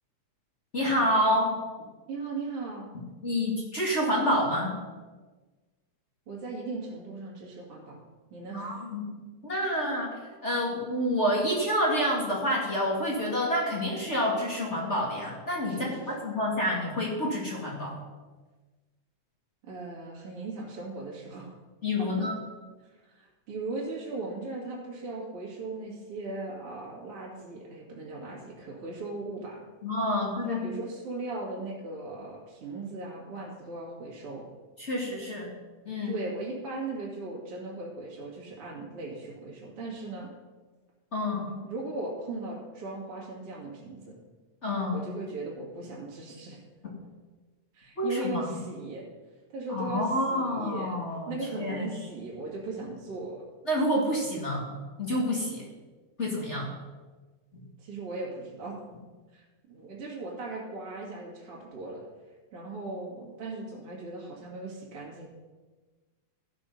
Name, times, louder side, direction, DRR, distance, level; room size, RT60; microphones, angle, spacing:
voice 1, 0.7-1.6 3.2-4.8 8.5-9.0 9.4-10.1 10.4-18.0 21.8-22.3 29.8-30.8 34.8-35.5 35.8-36.2 41.1-41.5 44.6-45.0 48.0-48.5 49.7-51.3 51.6-51.9 53.6-54.7 55.0-55.7 56.2-56.7 57.5-57.6, equal, 30° left, -2 dB, 1.5 m, -28 dB
voice 2, 2.1-2.9 6.3-8.0 8.3-8.7 15.7-16.3 19.6-21.5 22.8-29.6 30.5-34.4 35.2-35.3 36.0-40.3 41.6-44.2 44.9-46.6 47.7-49.0 49.5-50.9 51.3-53.4 57.8-58.8 59.3-62.1 62.5-65.3, right 3 dB, 50° right, -5 dB, 2.8 m, -38 dB
13.5 x 6.0 x 5.4 m, 1.3 s
omnidirectional pair, 3.5 m